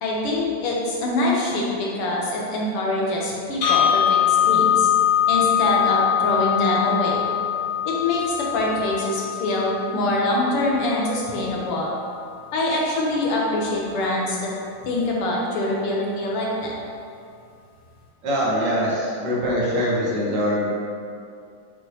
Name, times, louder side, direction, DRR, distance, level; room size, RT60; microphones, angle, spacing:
voice 1, 0.0-4.9 5.3-7.3 7.8-11.9 12.5-14.5 14.8-16.7, left 2 dB, 90° left, -3 dB, 2.1 m, -24 dB
sound 1, 3.6-11.7, left 10 dB, 65° left, 2.1 m, -23 dB
voice 2, 18.2-20.7, equal, 55° right, -5 dB, 1.9 m, -23 dB
7.5 x 6.1 x 3.1 m, 2.3 s
omnidirectional pair, 2.4 m